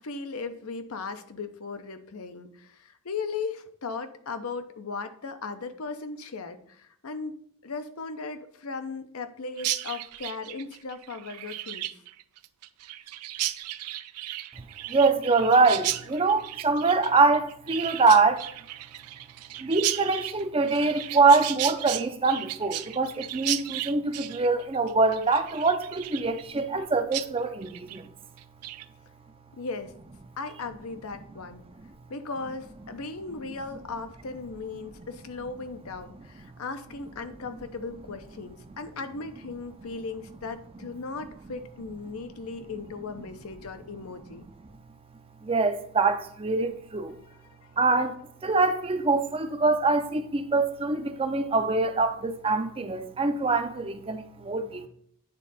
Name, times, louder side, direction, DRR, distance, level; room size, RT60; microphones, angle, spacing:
voice 1, 0.0-7.3 7.6-11.9 29.6-29.9 30.4-31.6 32.1-44.5 47.6-47.7, left 4 dB, 70° left, 0.7 m, -37 dB
Chirp tweet, 9.6-26.8 27.1-27.3 27.6-28.0 28.4-28.8, right 14 dB, 90° right, 0.4 m, -35 dB
voice 2, 14.9-18.5 19.6-28.0 45.4-47.2 47.8-54.9, right 3 dB, 25° right, 0.5 m, -24 dB
9.0 x 3.6 x 4.0 m
head